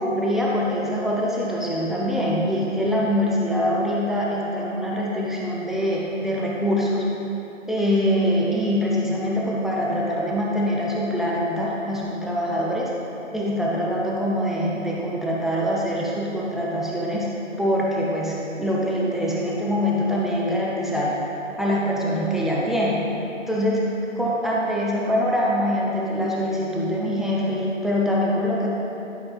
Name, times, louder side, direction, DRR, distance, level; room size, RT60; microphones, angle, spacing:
voice 1, 0.0-7.0 7.7-12.9 13.3-17.3 17.6-21.1 21.6-23.0 23.5-23.8 24.2-28.7, equal, ahead, -5 dB, 0.4 m, -24 dB
11.5 x 5.7 x 2.4 m, 2.9 s
figure-of-eight pair, 160°, 40 cm